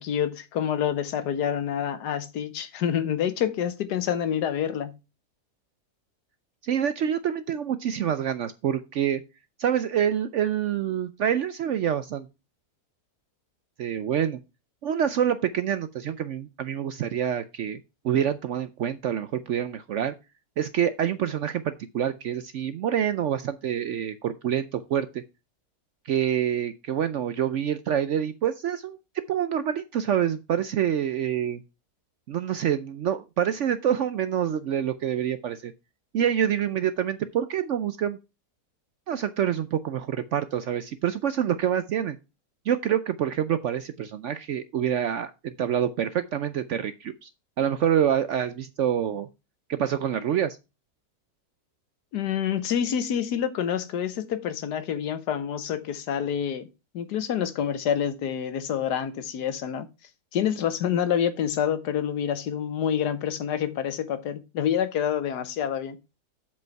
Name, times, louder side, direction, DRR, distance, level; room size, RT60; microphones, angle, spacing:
voice 1, 0.0-5.0 52.1-56.7 56.9-59.9 60.3-66.0, left 9 dB, 80° left, 1.5 m, -27 dB
voice 2, 6.6-9.2 9.6-12.3 13.8-14.4 14.8-17.8 18.0-20.1 20.6-25.2 26.1-29.0 29.3-31.6 32.3-35.7 36.1-38.2 39.1-42.2 42.7-47.3 47.6-49.3 49.7-50.6, right 9 dB, 70° right, 0.7 m, -26 dB
7.8 x 5.4 x 4.6 m
omnidirectional pair, 1.7 m